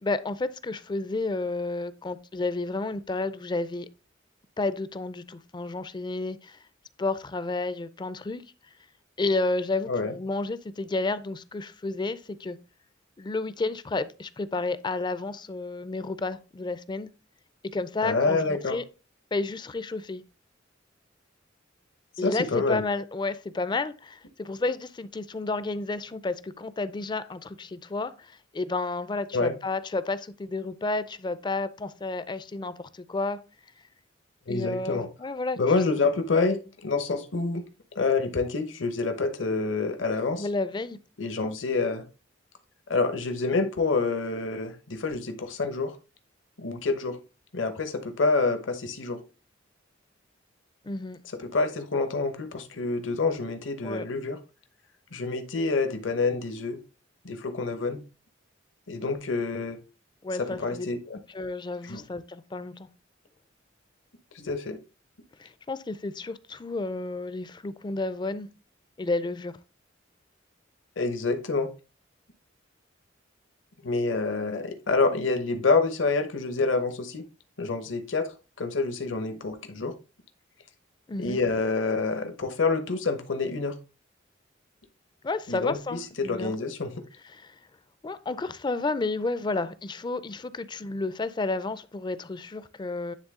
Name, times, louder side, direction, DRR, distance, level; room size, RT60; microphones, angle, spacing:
voice 1, 0.0-3.9 4.6-6.6 7.0-8.4 9.2-12.6 13.2-17.1 17.7-18.8 19.3-20.2 22.2-33.4 34.5-35.6 40.4-41.0 50.8-51.2 53.8-54.1 60.2-60.9 61.3-62.9 65.4-68.5 69.0-69.5 81.1-81.4 85.2-86.5 87.3-87.5 88.0-93.1, left 3 dB, 25° left, 0.4 m, -31 dB
voice 2, 18.0-18.8 22.2-22.8 29.3-29.5 34.5-35.1 35.6-37.6 37.9-40.5 41.2-42.0 42.9-46.0 46.6-47.2 47.5-49.2 51.4-54.4 55.1-56.8 57.2-58.0 58.9-59.8 60.6-61.2 61.9-62.0 64.3-64.8 71.0-71.7 73.8-77.2 77.6-78.3 78.6-79.9 81.2-83.7 85.5-86.9, left 3 dB, 75° left, 0.9 m, -27 dB
9.8 x 3.4 x 3.6 m
head